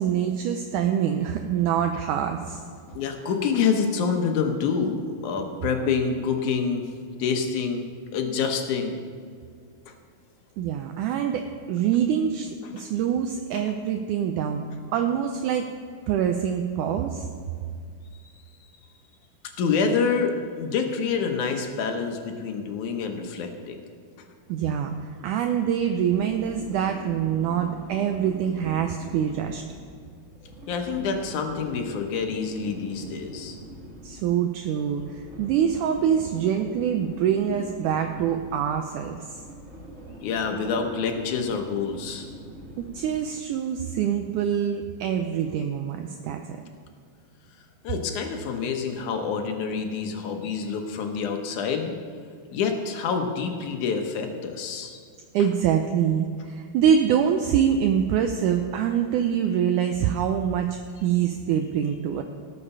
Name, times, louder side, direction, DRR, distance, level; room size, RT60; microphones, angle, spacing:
voice 1, 0.0-2.6 10.6-14.7 14.9-15.7 16.1-17.3 24.5-29.6 34.0-39.4 42.8-46.6 55.3-62.2, right 8 dB, 80° right, 5 dB, 1.9 m, -25 dB
voice 2, 2.9-6.8 7.2-9.0 12.8-12.9 18.1-18.2 19.6-23.8 30.7-33.6 40.2-42.3 47.8-51.9 52.5-55.0, left 5 dB, 65° left, 4 dB, 2.3 m, -27 dB
sound 1, 25.8-43.4, right 1 dB, 30° right, 1.6 m, -43 dB
18.0 x 7.0 x 5.5 m, 2.1 s
omnidirectional pair, 4.1 m